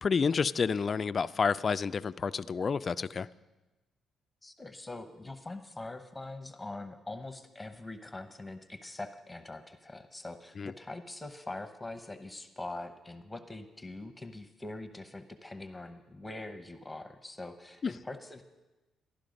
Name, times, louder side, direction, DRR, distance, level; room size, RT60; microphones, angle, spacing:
voice 1, 0.0-3.3 10.6-10.7, left 5 dB, 40° left, 15 dB, 0.3 m, -29 dB
voice 2, 4.4-18.4, left 2 dB, 10° left, 8 dB, 0.9 m, -43 dB
13.0 x 11.5 x 5.2 m, 1.1 s
cardioid pair, 90°, 0 cm